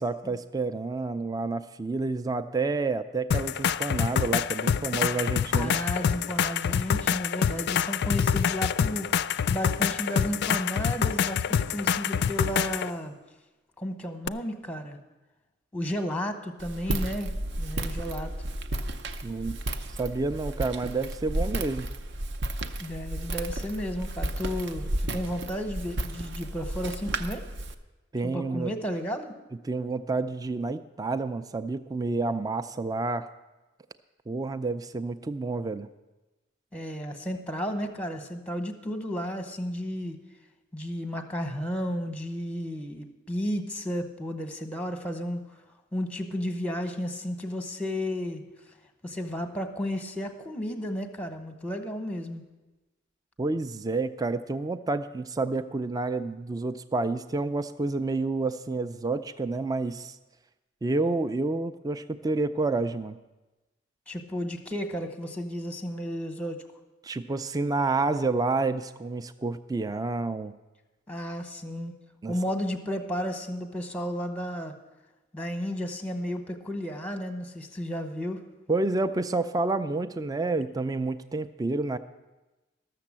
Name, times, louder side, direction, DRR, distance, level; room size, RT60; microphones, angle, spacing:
voice 1, 0.0-5.7 19.2-19.6 20.0-21.9 28.1-28.7 29.6-33.3 34.3-35.9 53.4-60.2 60.8-63.2 67.0-70.5 72.2-72.3 78.7-82.0, right 3 dB, 20° right, 11 dB, 0.3 m, -29 dB
sound 1, 3.3-12.9 14.3-14.4, left 7 dB, 55° left, 0.3 m, -26 dB
voice 2, 5.5-9.1 9.5-13.1 13.8-15.0 15.7-17.3 17.6-18.3 22.8-27.4 28.2-29.3 36.7-40.2 40.7-45.6 45.9-48.4 49.0-52.4 64.1-66.6 71.1-71.9 72.3-74.7 75.3-78.4, equal, 5° left, 7 dB, 0.8 m, -33 dB
Walk footsteps, 16.6-27.7, right 1 dB, 60° right, 0.6 m, -33 dB
13.0 x 6.8 x 7.3 m, 1.1 s
head